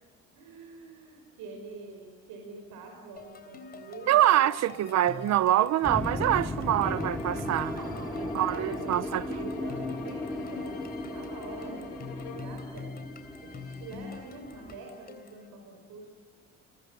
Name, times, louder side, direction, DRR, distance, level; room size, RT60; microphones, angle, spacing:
voice 1, 0.3-4.4 4.9-5.3 7.7-9.1 9.4-13.0 13.4-16.1, right 4 dB, 80° right, 5.3 m, -45 dB
sound 1, 3.2-15.5, left 4 dB, 30° left, 3.5 m, -46 dB
voice 2, 4.1-7.7 8.3-9.2, right 12 dB, 55° right, 0.8 m, -25 dB
sound 2, 5.8-14.8, left 1 dB, 5° left, 2.3 m, -36 dB
sound 3, 6.8-12.6, left 5 dB, 85° left, 6.8 m, -45 dB
29.5 x 23.0 x 7.6 m
cardioid pair, 150°, 32 cm